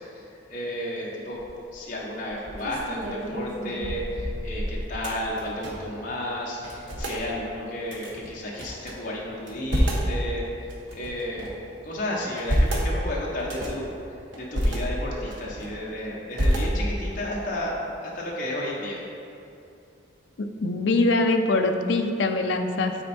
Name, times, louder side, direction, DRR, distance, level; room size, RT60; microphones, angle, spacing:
voice 1, 0.0-1.4 1.7-11.5 11.8-13.9 14.4-19.0, left 1 dB, 40° left, -4 dB, 1.0 m, -32 dB
sound 1, 1.3-1.7 2.2-6.0 6.2-6.3 6.6-7.2 7.9-8.9 9.4-10.1 10.7-11.6 12.2-12.9 13.4-13.9 14.3-14.8 15.3-15.9 16.3-17.1, equal, 75° right, 1.2 m, -28 dB
voice 2, 20.4-23.0, left 2 dB, 65° left, 5 dB, 0.5 m, -23 dB
9.0 x 4.3 x 4.3 m, 2.6 s
head